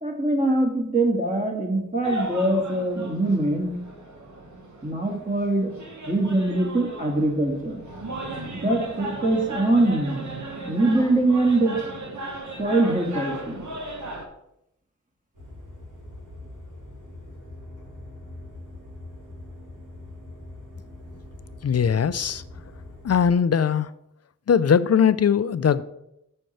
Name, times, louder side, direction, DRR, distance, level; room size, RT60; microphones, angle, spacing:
voice 1, 0.0-3.7 4.8-5.7 6.1-7.8 8.5-10.2 10.7-11.8 12.6-13.6, right 2 dB, 25° right, 2.1 m, -23 dB
sound 1, 2.0-14.3, right 2 dB, 65° right, 1.3 m, -36 dB
honda accord starting up, 15.3-23.3, left 1 dB, 85° right, 3.1 m, -42 dB
voice 2, 21.6-22.4 23.0-23.9 24.5-25.8, left 7 dB, 55° left, 0.5 m, -20 dB
6.3 x 4.4 x 6.5 m
cardioid pair, 45°, 31 cm